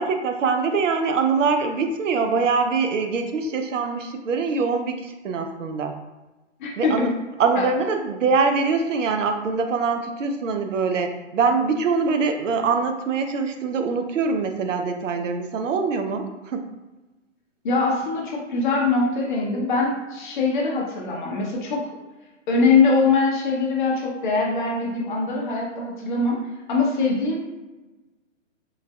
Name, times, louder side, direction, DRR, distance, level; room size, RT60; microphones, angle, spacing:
voice 1, 0.0-5.9 6.8-7.1 7.4-16.7, right 4 dB, 75° right, 6 dB, 0.5 m, -23 dB
voice 2, 6.6-7.1 7.6-7.7 17.6-21.9 22.5-26.4 26.7-27.5, left 4 dB, 40° left, -2 dB, 0.6 m, -22 dB
3.8 x 2.6 x 2.2 m, 1.1 s
hypercardioid pair, 130°, 37 cm